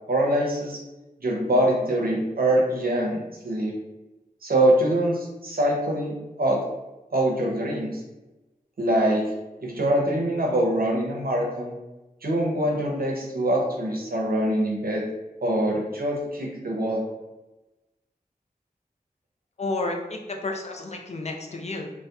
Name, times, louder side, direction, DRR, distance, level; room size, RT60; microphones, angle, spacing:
voice 1, 0.1-0.8 1.2-3.7 4.4-6.6 7.1-8.0 8.8-9.2 9.6-11.7 12.2-15.0 15.4-17.0, right 1 dB, 75° right, -2 dB, 0.6 m, -24 dB
voice 2, 19.6-21.9, left 2 dB, 45° left, 2 dB, 0.4 m, -31 dB
2.7 x 2.1 x 2.3 m, 1.1 s
wide cardioid pair, 50°, 15 cm